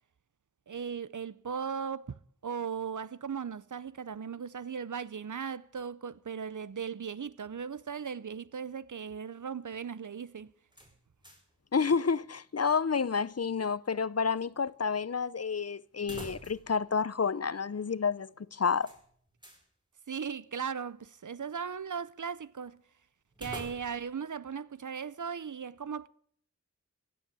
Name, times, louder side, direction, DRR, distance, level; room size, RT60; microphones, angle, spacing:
voice 1, 0.7-2.2 2.4-10.5 20.1-22.8 23.4-26.1, right 6 dB, 75° right, 0.7 m, -37 dB
sound 1, 10.7-11.6 11.9-12.0 16.0-16.8 17.1-17.2 18.8-19.7 23.3-24.2, right 1 dB, 15° right, 4.9 m, -47 dB
voice 2, 11.7-18.9, left 5 dB, 55° left, 0.6 m, -30 dB
16.0 x 8.6 x 8.8 m
wide cardioid pair, 40°, 31 cm